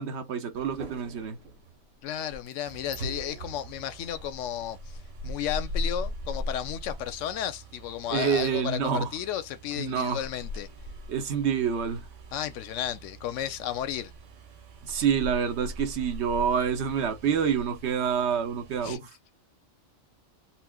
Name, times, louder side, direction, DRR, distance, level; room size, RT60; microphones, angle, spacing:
voice 1, 0.0-1.4 8.1-9.1 9.8-10.2 11.1-12.0 14.8-19.1, right 7 dB, 70° right, 1.0 m, -27 dB
sound 1, 0.5-19.0, left 1 dB, 85° right, 1.2 m, -40 dB
voice 2, 2.0-5.0 5.2-10.7 12.3-14.1 18.8-19.0, left 10 dB, 85° left, 0.9 m, -33 dB
4.2 x 2.0 x 2.2 m
omnidirectional pair, 1.2 m